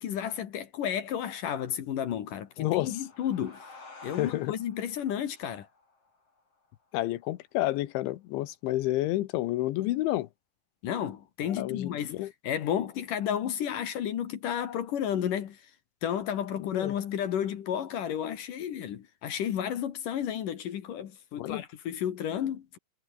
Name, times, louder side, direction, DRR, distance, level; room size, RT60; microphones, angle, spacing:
voice 1, 0.0-3.7 4.0-5.7 10.8-15.7 16.0-22.8, left 9 dB, 60° left, 2.7 m, -32 dB
sound 1, 2.4-7.6, left 3 dB, 30° left, 7.3 m, -52 dB
voice 2, 2.6-2.9 4.2-4.5 6.9-10.3 11.4-12.3 16.6-16.9 21.3-21.6, left 16 dB, 85° left, 3.5 m, -30 dB
omnidirectional pair, 5.2 m